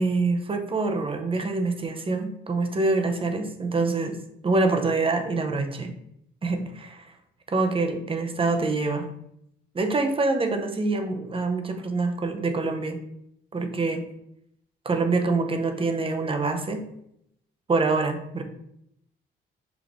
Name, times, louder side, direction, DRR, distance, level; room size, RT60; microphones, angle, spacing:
voice 1, 0.0-4.2 4.4-5.9 6.4-7.1 7.5-9.1 9.7-13.0 13.5-14.0 14.8-16.9 17.7-18.4, right 3 dB, 25° right, 6 dB, 0.7 m, -25 dB
5.9 x 2.4 x 3.5 m, 0.76 s
cardioid pair, 90°, 20 cm